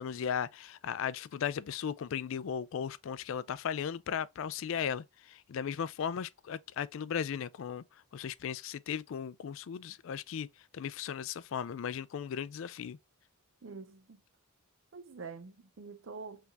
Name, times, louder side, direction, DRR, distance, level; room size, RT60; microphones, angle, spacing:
voice 1, 0.0-7.8 8.1-13.0, left 8 dB, 65° left, 0.3 m, -36 dB
voice 2, 13.6-14.2 14.9-16.5, right 4 dB, 65° right, 0.5 m, -46 dB
4.7 x 3.4 x 2.4 m
head